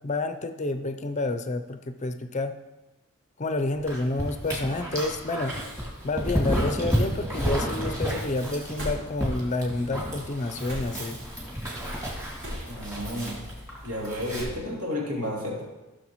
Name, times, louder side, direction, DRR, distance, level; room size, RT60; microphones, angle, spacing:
voice 1, 0.0-2.5 3.4-5.6 6.0-11.2, left 2 dB, 35° left, 8 dB, 0.5 m, -29 dB
sound 1, 3.7-4.0 4.8-4.9 6.1-6.4 6.6-7.2 8.7-9.3 10.7-11.2 12.4-12.9 14.3-14.8, equal, 60° right, 3.2 m, -38 dB
Dog, 3.9-14.4, equal, 15° right, 2.1 m, -31 dB
voice 2, 12.7-13.4 13.8-15.6, left 1 dB, 80° right, -4 dB, 2.7 m, -31 dB
15.5 x 6.4 x 3.1 m, 1.1 s
head